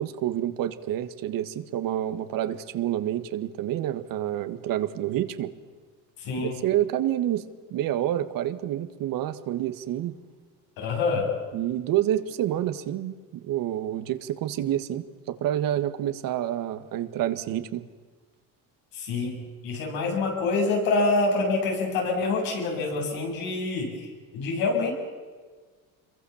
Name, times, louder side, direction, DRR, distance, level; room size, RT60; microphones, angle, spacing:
voice 1, 0.0-5.5 6.4-7.4 7.7-10.2 11.5-17.8, right 12 dB, 75° right, 10 dB, 1.7 m, -28 dB
voice 2, 6.2-6.5 10.8-11.4 18.9-24.9, left 3 dB, 85° left, 0 dB, 7.8 m, -26 dB
27.0 x 22.5 x 7.2 m, 1.5 s
cardioid pair, 110°, 34 cm